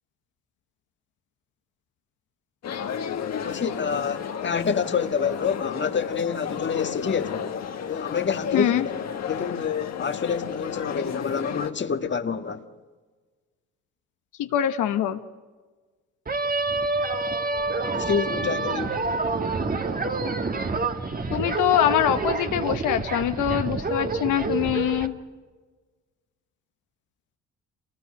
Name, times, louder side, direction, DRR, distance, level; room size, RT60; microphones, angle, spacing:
sound 1, 2.6-11.7, left 7 dB, 60° left, 1.8 m, -32 dB
voice 1, 3.4-7.5 7.9-9.0 9.3-12.6 17.9-19.0, left 6 dB, 40° left, 1.6 m, -27 dB
voice 2, 8.5-8.9 14.4-15.2 21.3-25.1, left 11 dB, 85° left, 1.2 m, -24 dB
sound 2, 16.3-25.1, right 3 dB, 30° right, 1.7 m, -27 dB
27.5 x 19.5 x 9.8 m
cardioid pair, 90°, 30 cm